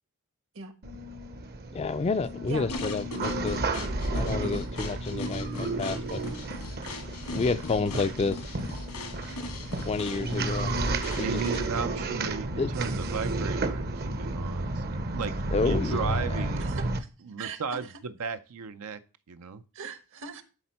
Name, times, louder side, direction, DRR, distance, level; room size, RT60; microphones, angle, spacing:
sound 1, 0.8-17.0, right 2 dB, 45° right, 0.8 m, -32 dB
voice 1, 1.7-3.7 4.1-6.2 7.3-8.5 9.9-10.8 11.1-11.4 12.6-12.7 15.5-16.5, left 4 dB, 30° left, 0.4 m, -30 dB
sound 2, 2.7-11.8, left 2 dB, 85° left, 1.9 m, -40 dB
voice 2, 11.1-12.5 12.7-15.3 15.6-16.6 17.2-19.0 19.3-19.6, right 5 dB, 75° right, 0.6 m, -35 dB
voice 3, 16.6-17.1 17.4-17.8 19.7-20.4, right 5 dB, 60° right, 1.2 m, -40 dB
12.0 x 4.2 x 4.3 m
head